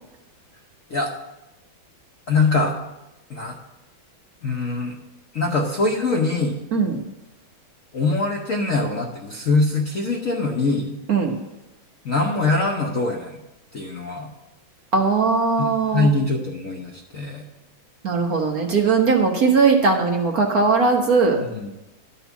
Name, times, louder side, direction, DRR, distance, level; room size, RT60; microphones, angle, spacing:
voice 1, 2.3-2.8 3.3-3.6 4.4-5.0 5.3-6.7 7.9-11.0 12.0-13.4 13.7-14.3 15.6-17.5 21.4-21.7, left 3 dB, 55° left, 0 dB, 1.0 m, -23 dB
voice 2, 14.9-16.1 18.0-21.4, right 4 dB, 55° right, 1 dB, 1.4 m, -19 dB
11.5 x 4.4 x 7.0 m, 0.96 s
omnidirectional pair, 2.2 m